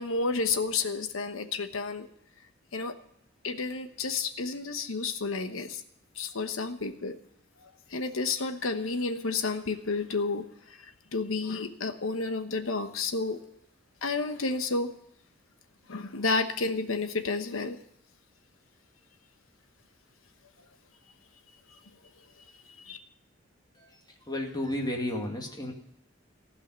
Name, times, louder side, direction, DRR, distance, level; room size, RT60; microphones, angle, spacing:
voice 1, 0.0-2.1 2.7-2.9 3.4-5.8 6.2-7.2 7.6-10.4 11.1-13.4 14.0-14.9 15.9-17.8 22.8-23.0, left 4 dB, 90° left, 8 dB, 1.1 m, -31 dB
voice 2, 23.7-25.7, left 1 dB, 20° left, 1 dB, 2.1 m, -33 dB
15.5 x 5.6 x 9.4 m, 0.75 s
head